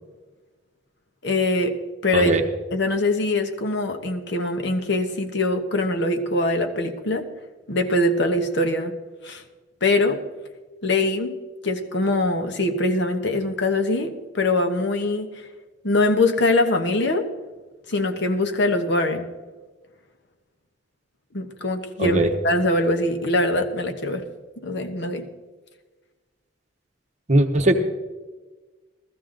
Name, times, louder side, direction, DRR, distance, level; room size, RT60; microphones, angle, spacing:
voice 1, 1.2-2.3 2.7-7.2 7.7-8.9 9.2-9.4 9.8-10.2 10.8-11.3 11.6-15.3 15.8-17.3 17.9-19.3 21.3-24.2 24.6-25.3, left 2 dB, 60° left, 5 dB, 1.1 m, -23 dB
voice 2, 22.0-22.3 27.3-27.8, right 1 dB, 35° right, 5 dB, 1.0 m, -19 dB
15.0 x 14.0 x 3.9 m, 1.3 s
head